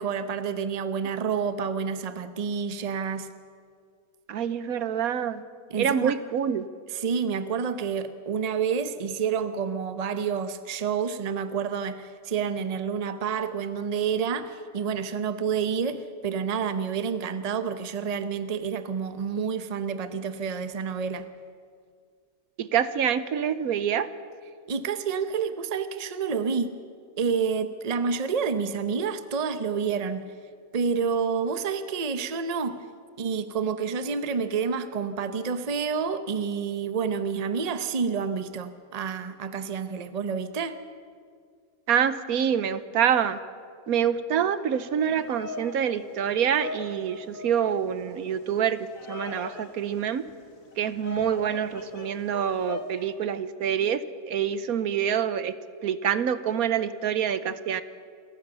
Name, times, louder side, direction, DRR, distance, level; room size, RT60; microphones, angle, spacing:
voice 1, 0.0-3.3 5.7-6.2 6.9-21.3 24.7-26.8 27.2-30.3 30.7-32.9 33.2-40.8, right 6 dB, 30° right, 11 dB, 0.8 m, -29 dB
voice 2, 4.3-5.4 5.8-6.7 22.6-24.1 41.9-43.4 43.9-48.8 49.1-50.2 50.8-55.5 55.8-57.8, right 8 dB, 75° right, 14 dB, 1.2 m, -26 dB
Bird vocalization bird call bird song, 45.0-53.0, left 3 dB, 65° left, 2.0 m, -41 dB
28.0 x 14.5 x 6.9 m, 2.1 s
omnidirectional pair, 1.6 m